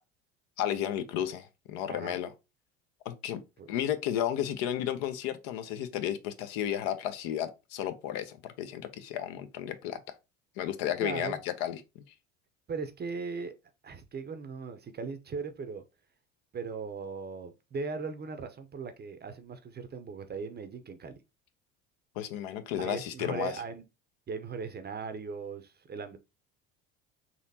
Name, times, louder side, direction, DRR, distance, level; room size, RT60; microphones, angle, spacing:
voice 1, 0.6-2.3 3.0-3.4 3.7-10.0 10.6-11.8 22.2-23.5, left 10 dB, 60° left, 0.8 m, -33 dB
voice 2, 1.9-2.2 3.6-3.7 11.0-11.4 12.7-13.5 13.8-15.8 16.5-21.2 22.8-23.8 24.3-26.2, right 5 dB, 25° right, 0.7 m, -38 dB
4.1 x 2.9 x 2.7 m
hypercardioid pair, 70°, 39 cm